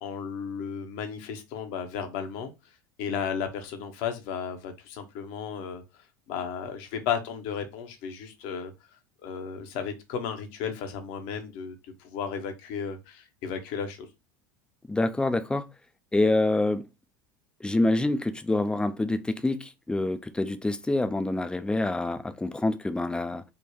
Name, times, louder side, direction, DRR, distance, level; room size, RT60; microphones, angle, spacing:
voice 1, 0.0-2.5 3.0-5.8 6.3-8.7 9.2-11.7 12.0-14.1, left 7 dB, 60° left, 0.8 m, -34 dB
voice 2, 14.9-15.7 16.1-16.9 17.6-23.4, left 2 dB, 10° left, 0.3 m, -26 dB
3.5 x 2.2 x 3.0 m
hypercardioid pair, 80°, 11 cm